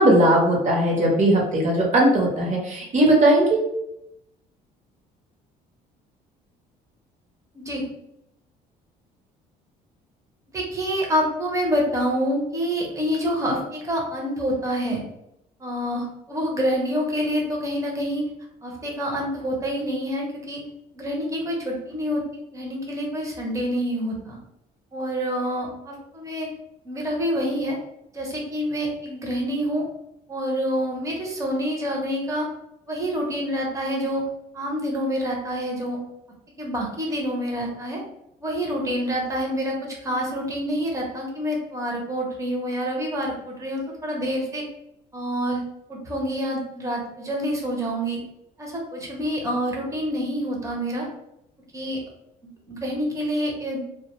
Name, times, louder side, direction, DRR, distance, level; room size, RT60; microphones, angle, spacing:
voice 1, 0.0-3.6, right 1 dB, 45° right, -1 dB, 0.9 m, -18 dB
voice 2, 7.5-7.9 10.5-15.0 15.6-18.2 18.6-20.6 20.9-24.4 24.9-26.5 26.8-27.8 28.1-29.8 30.3-32.5 32.9-34.2 34.5-36.0 36.6-38.0 38.4-44.6 45.1-45.6 45.9-48.2 48.6-51.1 51.7-52.0 52.7-53.9, equal, 20° right, -1 dB, 0.7 m, -27 dB
2.2 x 2.2 x 2.9 m, 0.82 s
cardioid pair, 110°, 17 cm